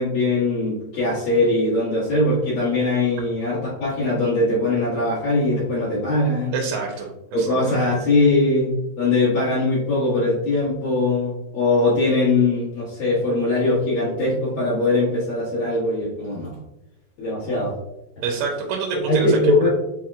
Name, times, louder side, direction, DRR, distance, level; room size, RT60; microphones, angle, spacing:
voice 1, 0.0-6.5 7.3-8.7 9.0-16.5 17.2-17.7 19.1-19.7, left 2 dB, 60° left, -10 dB, 3.1 m, -21 dB
voice 2, 6.5-7.1 7.4-7.8 18.2-19.4 19.6-19.7, right 5 dB, 85° right, 0 dB, 2.6 m, -27 dB
7.8 x 2.8 x 2.4 m, 0.90 s
omnidirectional pair, 4.6 m